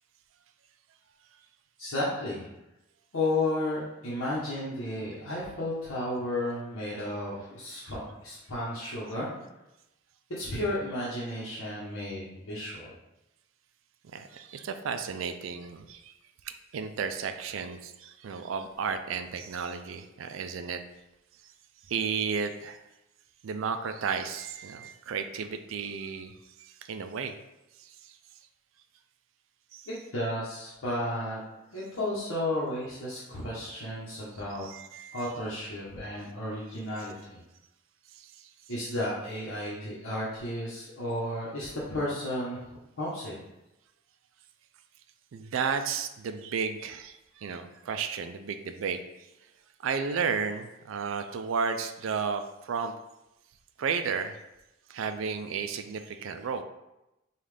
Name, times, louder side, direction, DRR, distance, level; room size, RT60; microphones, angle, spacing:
voice 1, 1.8-2.5 3.1-9.3 10.4-12.9 30.1-31.4 31.7-34.7 35.1-37.4 38.7-42.6 43.0-43.4, left 1 dB, 90° left, -8 dB, 1.0 m, -33 dB
voice 2, 14.1-16.1 16.4-20.8 21.9-22.8 23.4-26.3 26.8-27.3 27.8-28.2 29.7-29.8 34.6-35.3 38.2-38.3 45.3-49.0 49.8-52.9 53.8-54.4 54.9-56.6, right 6 dB, 75° right, 8 dB, 0.4 m, -33 dB
5.4 x 2.4 x 3.3 m, 0.92 s
head